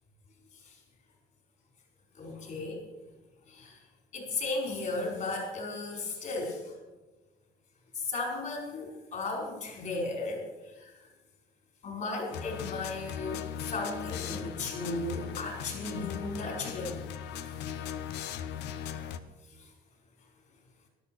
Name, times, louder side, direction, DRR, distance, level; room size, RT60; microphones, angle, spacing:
voice 1, 2.2-2.8 3.5-3.8 4.1-6.8 7.9-11.1 11.8-17.0 17.4-17.5 19.6-19.7, left 2 dB, 50° left, 1 dB, 5.0 m, -35 dB
sound 1, 12.3-19.2, left 9 dB, 85° left, 1.0 m, -38 dB
13.0 x 12.0 x 6.2 m, 1.2 s
cardioid pair, 110°, 17 cm